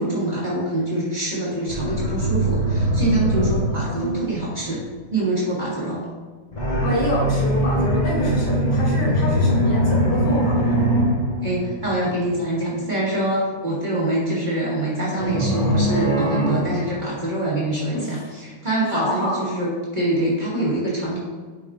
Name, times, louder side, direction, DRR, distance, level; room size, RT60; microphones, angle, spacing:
voice 1, 0.0-4.8 5.1-6.0 11.4-21.2, right 1 dB, 25° right, -8 dB, 1.7 m, -25 dB
sound 1, 1.7-4.8 6.5-12.2 15.2-17.6, right 1 dB, 25° left, 1.1 m, -22 dB
voice 2, 3.7-4.3 6.8-10.8 17.9-18.2 18.9-19.6, left 1 dB, 60° left, -3 dB, 1.5 m, -27 dB
8.6 x 4.9 x 2.5 m, 1.5 s
omnidirectional pair, 2.2 m